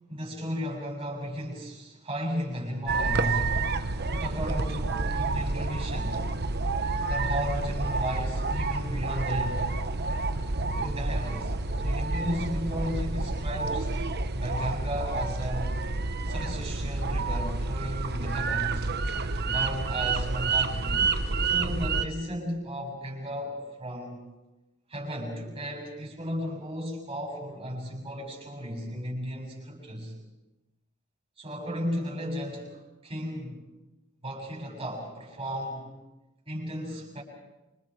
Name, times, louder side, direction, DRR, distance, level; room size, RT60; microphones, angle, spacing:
voice 1, 0.1-3.5 4.1-6.3 7.1-9.7 10.6-13.9 14.4-15.9 16.3-18.8 19.4-21.1 21.4-24.3 24.9-30.1 31.4-33.6 34.2-35.9 36.5-37.2, equal, 30° right, -2 dB, 7.3 m, -34 dB
sound 1, 2.9-22.1, right 3 dB, 55° right, 1.1 m, -29 dB
27.5 x 26.5 x 5.0 m, 1.0 s
head